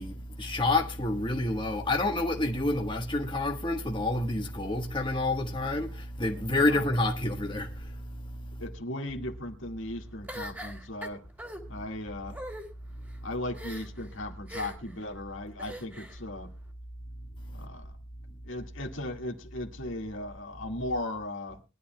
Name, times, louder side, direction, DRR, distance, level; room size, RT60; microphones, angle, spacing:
voice 1, 0.0-8.1, left 2 dB, 25° left, 1.5 m, -28 dB
voice 2, 8.6-11.2 11.7-12.4 13.2-16.5 17.5-18.0 18.4-21.7, left 1 dB, 75° left, 2.0 m, -37 dB
sound 1, 10.3-11.6 12.3-12.6 13.5-14.0 14.5-14.9 15.6-16.2, equal, 10° right, 2.3 m, -41 dB
22.0 x 11.5 x 2.3 m
head